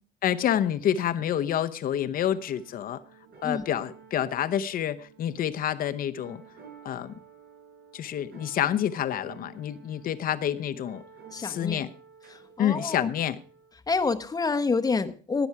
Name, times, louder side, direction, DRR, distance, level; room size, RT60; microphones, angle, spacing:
voice 1, 0.2-3.0 3.4-6.4 6.8-7.1 7.9-11.0 11.4-11.9 12.6-13.4, left 10 dB, 55° left, 11 dB, 0.9 m, -28 dB
sound 1, 2.2-13.7, right 6 dB, 65° right, 6.4 m, -52 dB
voice 2, 11.3-11.8 12.6-13.1 13.9-15.5, left 4 dB, 20° left, 10 dB, 1.0 m, -27 dB
18.0 x 7.1 x 4.7 m, 0.40 s
cardioid pair, 110°, 17 cm